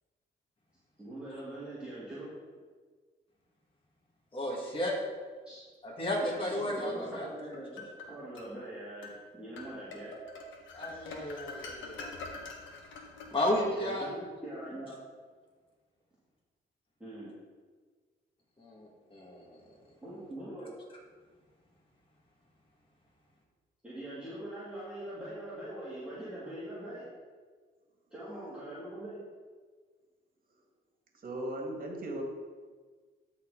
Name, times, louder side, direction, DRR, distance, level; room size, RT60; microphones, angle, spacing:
voice 1, 1.0-2.3 5.4-5.6 6.2-7.7 8.1-10.1 13.7-15.0 17.0-17.3 20.0-20.7 23.8-27.1 28.1-29.2, right 1 dB, 5° right, -11 dB, 2.6 m, -43 dB
voice 2, 4.3-4.9 5.8-7.3 10.7-12.1 13.3-14.0 18.6-19.6, left 1 dB, 25° left, -3 dB, 2.1 m, -33 dB
sound 1, 7.2-8.5 9.0-9.2 9.6-14.0, left 3 dB, 75° left, 1.5 m, -45 dB
voice 3, 31.2-32.2, right 1 dB, 45° right, 1 dB, 2.0 m, -37 dB
12.5 x 4.3 x 3.9 m, 1.5 s
cardioid pair, 90°, 20 cm